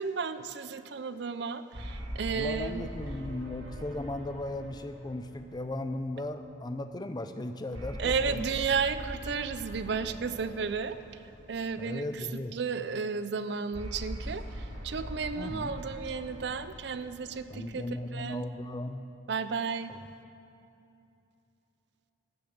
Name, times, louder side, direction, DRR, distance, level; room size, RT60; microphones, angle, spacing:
voice 1, 0.0-2.9 8.0-11.2 11.5-12.3 12.5-17.9 18.1-18.5 19.3-19.9, right 5 dB, 60° right, 12 dB, 0.4 m, -33 dB
sound 1, 1.7-6.3 7.7-12.1 13.7-18.3, equal, 85° right, 1.7 m, -42 dB
voice 2, 2.3-8.5 11.7-12.6 15.3-15.8 17.5-19.0 19.9-20.0, left 1 dB, 20° left, 8 dB, 0.5 m, -37 dB
12.5 x 6.9 x 7.9 m, 2.7 s
head